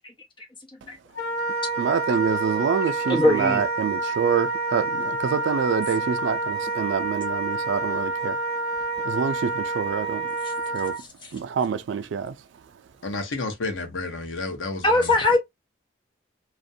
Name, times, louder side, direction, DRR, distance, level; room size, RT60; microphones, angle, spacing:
Wind instrument woodwind instrument, 1.1-11.0, right 3 dB, 55° left, 1.1 m, -28 dB
voice 1, 1.8-8.4 9.0-10.4 10.7-11.0 11.3-12.4, right 6 dB, 70° right, 0.3 m, -26 dB
voice 2, 3.1-3.7 14.8-15.4, left 2 dB, 25° left, 0.7 m, -20 dB
voice 3, 13.0-15.1, left 3 dB, 80° left, 0.8 m, -31 dB
2.4 x 2.1 x 2.6 m
head